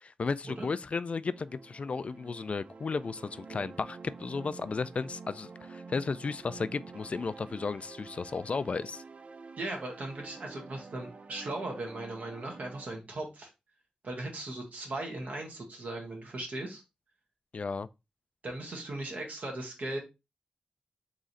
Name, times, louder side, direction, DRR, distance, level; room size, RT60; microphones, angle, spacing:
voice 1, 0.0-9.0 17.5-17.9, left 4 dB, 50° left, 0.3 m, -34 dB
sound 1, 1.3-12.9, right 4 dB, 50° right, 0.5 m, -48 dB
voice 2, 9.6-13.5 14.0-16.8 18.4-20.0, right 2 dB, 70° right, 1.6 m, -38 dB
3.7 x 3.2 x 3.9 m
cardioid pair, 65°, 3 cm